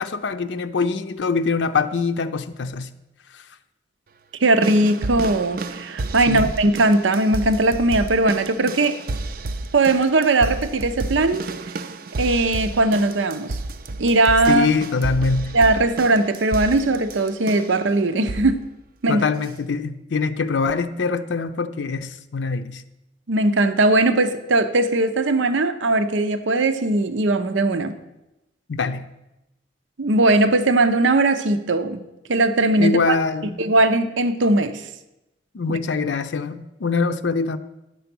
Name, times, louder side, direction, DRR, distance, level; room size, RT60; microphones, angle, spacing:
voice 1, 0.0-2.9 6.3-6.4 14.5-15.5 19.1-22.8 28.7-29.0 32.8-33.6 35.5-37.6, left 4 dB, 75° left, 10 dB, 0.5 m, -23 dB
voice 2, 4.4-9.0 9.7-11.4 12.2-13.6 14.0-14.7 15.5-18.6 19.0-19.3 23.3-28.0 30.0-32.0 32.3-33.2 33.6-34.8 35.7-35.8, right 2 dB, 85° right, 10 dB, 0.7 m, -19 dB
sound 1, 4.6-17.8 18.3-18.6 19.4-19.5, right 2 dB, 50° right, 0.5 m, -31 dB
9.9 x 6.9 x 6.0 m, 0.93 s
head